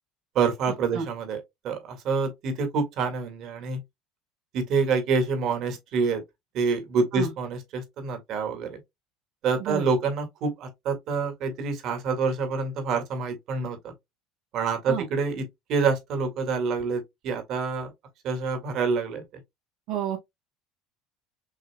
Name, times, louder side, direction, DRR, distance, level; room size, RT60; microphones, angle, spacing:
voice 1, 0.4-3.8 4.5-6.2 6.5-8.8 9.4-13.9 14.5-17.9 18.2-19.2, right 4 dB, 55° right, 1.9 m, -27 dB
voice 2, 0.9-1.1 7.1-7.3 9.6-9.9 14.9-15.1 19.9-20.2, right 9 dB, 70° right, 1.5 m, -30 dB
6.5 x 2.8 x 2.2 m
supercardioid pair, 110°, 0 cm